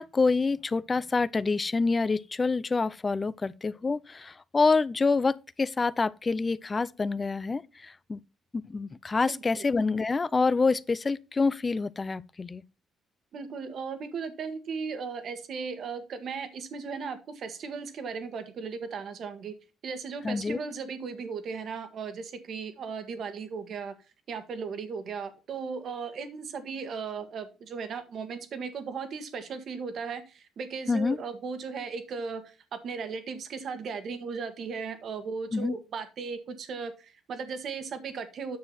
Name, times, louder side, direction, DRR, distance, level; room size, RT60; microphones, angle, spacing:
voice 1, 0.0-8.2 8.5-12.6 20.2-20.6 30.9-31.2 35.5-35.8, left 4 dB, 30° left, 0.6 m, -27 dB
voice 2, 9.3-9.7 13.3-19.6 19.8-23.9 24.3-32.5 32.8-38.6, right 5 dB, 65° right, 1.8 m, -36 dB
9.4 x 6.7 x 4.3 m
cardioid pair, 90°, 0 cm